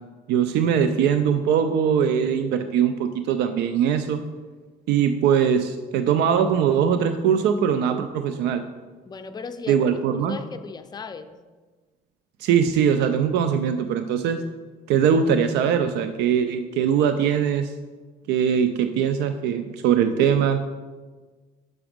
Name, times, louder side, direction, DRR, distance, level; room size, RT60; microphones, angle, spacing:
voice 1, 0.3-4.2 4.9-8.6 9.7-10.4 12.4-14.4 14.9-17.7 18.3-20.6, right 8 dB, 85° right, 9 dB, 0.5 m, -21 dB
voice 2, 9.0-9.8 10.1-11.4, left 5 dB, 25° left, 8 dB, 0.5 m, -37 dB
6.1 x 5.9 x 5.1 m, 1.3 s
cardioid pair, 110°, 17 cm